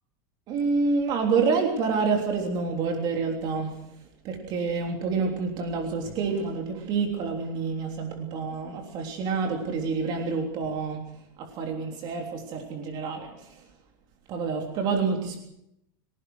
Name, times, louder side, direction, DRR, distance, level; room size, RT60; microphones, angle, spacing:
voice 1, 0.5-3.9 4.2-11.0 11.4-13.6 14.3-15.4, right 4 dB, 40° right, 2 dB, 3.4 m, -28 dB
25.0 x 18.0 x 6.3 m, 0.78 s
supercardioid pair, 155°, 12 cm